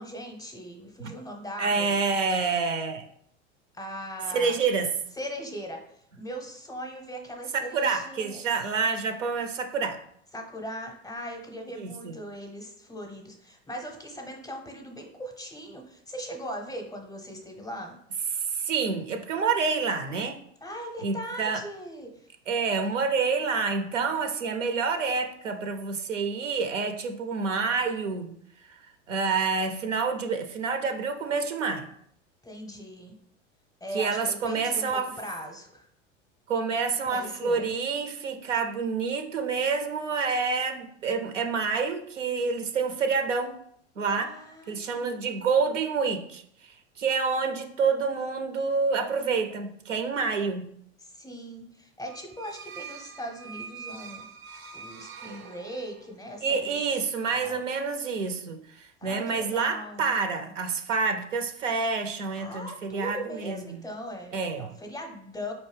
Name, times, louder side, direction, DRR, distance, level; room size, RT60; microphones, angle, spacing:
voice 1, 0.0-2.0 3.7-4.6 5.2-8.4 10.3-18.0 20.6-22.3 32.4-33.1 33.8-35.9 37.1-37.8 44.2-45.3 51.0-54.2 54.7-56.8 57.3-57.6 59.0-60.1 62.4-65.5, equal, 10° left, 3 dB, 0.6 m, -39 dB
voice 2, 1.6-3.1 4.3-4.9 7.7-10.0 11.7-12.1 18.4-20.4 21.0-21.6 22.5-28.4 29.1-31.9 33.9-35.1 36.5-43.6 44.0-44.3 44.7-50.7 56.4-63.7 64.3-64.7, right 5 dB, 90° right, 7 dB, 0.5 m, -28 dB
sound 1, 52.0-56.2, right 6 dB, 30° right, 0.4 m, -44 dB
4.4 x 2.6 x 3.2 m, 0.68 s
hypercardioid pair, 85°, 36 cm